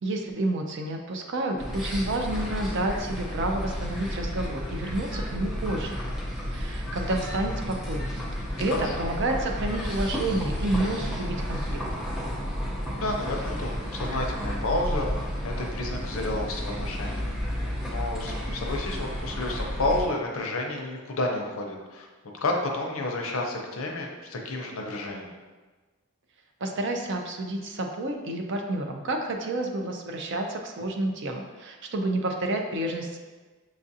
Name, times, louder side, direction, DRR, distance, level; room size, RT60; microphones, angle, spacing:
voice 1, 0.0-6.0 6.5-8.2 8.6-11.8 26.6-33.2, right 2 dB, 55° right, 3 dB, 0.5 m, -30 dB
sound 1, 1.6-20.1, equal, ahead, 0.6 m, -32 dB
voice 2, 8.8-9.1 12.8-22.1 22.4-25.3, left 2 dB, 70° left, 1 dB, 0.6 m, -31 dB
6.2 x 2.4 x 2.7 m, 1.3 s
head